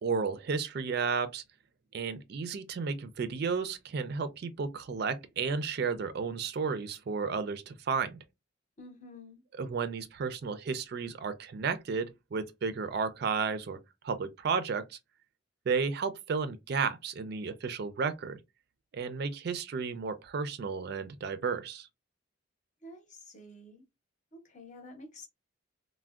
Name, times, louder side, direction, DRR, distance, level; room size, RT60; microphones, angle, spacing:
voice 1, 0.0-1.4 1.9-8.2 9.5-13.8 14.0-15.0 15.7-18.4 18.9-21.9, right 5 dB, 50° right, 0.3 m, -33 dB
voice 2, 8.8-9.4 22.8-23.8 24.3-25.3, left 1 dB, 35° left, 0.7 m, -49 dB
3.4 x 2.1 x 2.3 m
head